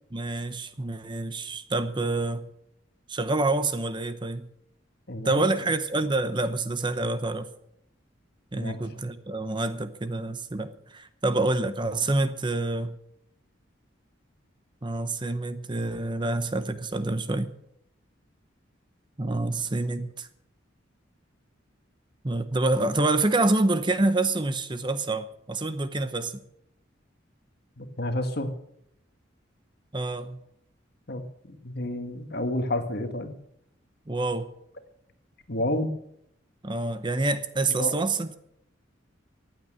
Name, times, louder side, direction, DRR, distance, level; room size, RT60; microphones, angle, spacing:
voice 1, 0.1-2.5 3.1-4.5 5.2-7.5 8.5-13.0 14.8-17.5 19.2-20.3 22.2-26.4 29.9-30.4 34.1-34.5 36.6-38.4, right 2 dB, 25° right, 12 dB, 0.8 m, -27 dB
voice 2, 5.1-5.4 8.5-8.8 27.8-28.5 31.1-33.4 35.5-35.9 37.8-38.0, left 1 dB, 55° left, 7 dB, 1.7 m, -30 dB
15.0 x 9.1 x 7.8 m, 0.75 s
head